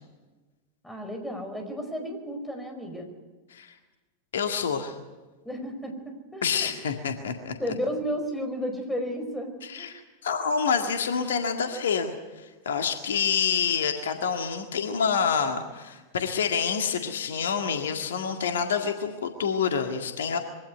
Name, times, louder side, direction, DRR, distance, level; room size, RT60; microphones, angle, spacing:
voice 1, 0.8-3.1 5.4-6.7 7.6-9.9, equal, 5° left, 4 dB, 4.9 m, -33 dB
voice 2, 4.3-4.9 6.4-7.5 9.7-20.4, left 6 dB, 65° left, 6 dB, 1.9 m, -27 dB
23.0 x 17.0 x 9.5 m, 1.2 s
figure-of-eight pair, 90°, 0 cm